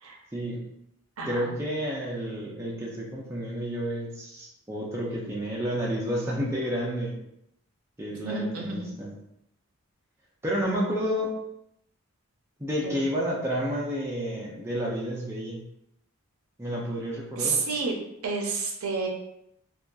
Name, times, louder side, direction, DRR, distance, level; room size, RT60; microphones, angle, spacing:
voice 1, 0.3-0.7 1.2-7.1 8.0-9.1 10.4-11.4 12.6-15.6 16.6-17.7, equal, 10° right, -5 dB, 0.3 m, -30 dB
voice 2, 1.2-1.6 8.2-8.9 12.8-13.0 17.4-18.0 18.2-19.1, right 4 dB, 70° right, 0 dB, 0.5 m, -30 dB
2.6 x 2.2 x 2.2 m, 0.79 s
head